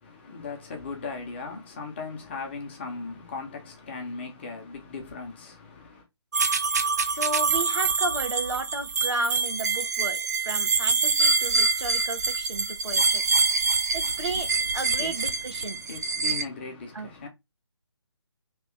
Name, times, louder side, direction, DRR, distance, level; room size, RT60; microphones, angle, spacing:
voice 1, 0.0-6.1 13.9-17.3, left 4 dB, 25° left, 0.8 m, -39 dB
sound 1, 6.3-16.4, right 4 dB, 35° right, 0.4 m, -25 dB
voice 2, 7.1-13.2 13.9-15.8 16.9-17.1, right 2 dB, 80° right, 1.0 m, -33 dB
3.1 x 2.8 x 3.5 m
figure-of-eight pair, 145°, 15 cm